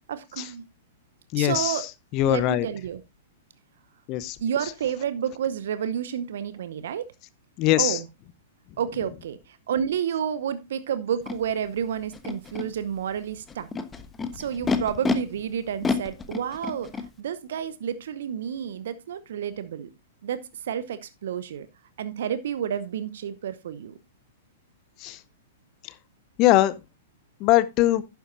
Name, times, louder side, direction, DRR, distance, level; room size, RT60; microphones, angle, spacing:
voice 1, 0.1-0.6 1.3-1.9 2.3-3.0 4.4-7.1 7.8-8.1 8.8-13.7 14.3-16.9 17.2-19.9 20.2-21.7 22.0-24.0, right 8 dB, 60° right, 0.8 m, -30 dB
voice 2, 1.3-1.8 2.1-2.7 4.1-4.4 7.6-8.0 25.0-25.2 26.4-26.7 27.4-28.0, left 15 dB, 40° left, 0.8 m, -21 dB
Animal, 11.3-11.4 12.1-12.6 13.5-15.1 15.8-17.1, left 4 dB, 15° left, 1.2 m, -28 dB
11.5 x 9.3 x 2.6 m
figure-of-eight pair, 105°, 0 cm